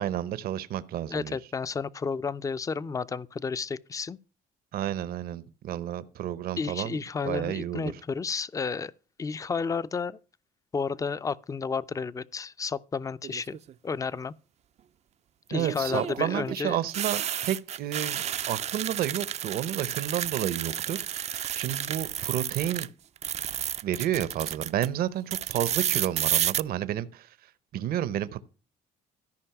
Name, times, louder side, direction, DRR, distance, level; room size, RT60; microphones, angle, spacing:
voice 1, 0.0-1.4 4.7-7.0 7.2-8.0 15.5-22.9 23.8-27.4 27.7-28.4, right 11 dB, 65° right, 0.7 m, -31 dB
voice 2, 1.1-4.2 6.6-8.9 9.2-10.2 10.7-13.6 13.8-14.3 15.5-16.8, left 5 dB, 20° left, 0.4 m, -32 dB
sound 1, 13.2-13.7 15.6-22.9 23.2-24.9 25.3-26.6, right 10 dB, 40° right, 0.4 m, -31 dB
13.5 x 5.3 x 5.8 m
cardioid pair, 110°, 17 cm